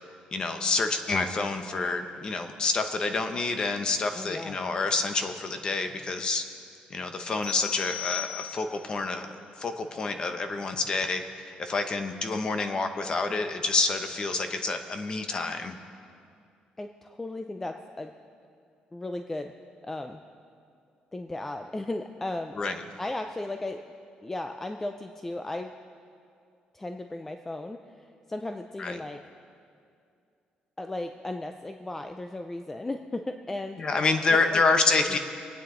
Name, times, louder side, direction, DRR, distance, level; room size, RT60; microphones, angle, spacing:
voice 1, 0.3-6.4 6.9-15.8 22.6-22.8 28.8-29.0 33.8-35.2, left 3 dB, 30° left, 7 dB, 0.9 m, -28 dB
voice 2, 4.2-4.6 16.8-18.1 18.9-19.5 19.8-20.2 21.1-22.6 23.0-23.8 24.2-25.7 26.7-29.2 30.8-33.8 34.3-34.6 35.1-35.2, left 2 dB, 10° left, 6 dB, 0.4 m, -35 dB
sound 1, 7.4-8.9, left 11 dB, 50° left, 4.1 m, -36 dB
24.5 x 9.1 x 3.8 m, 2.4 s
cardioid pair, 160°, 3 cm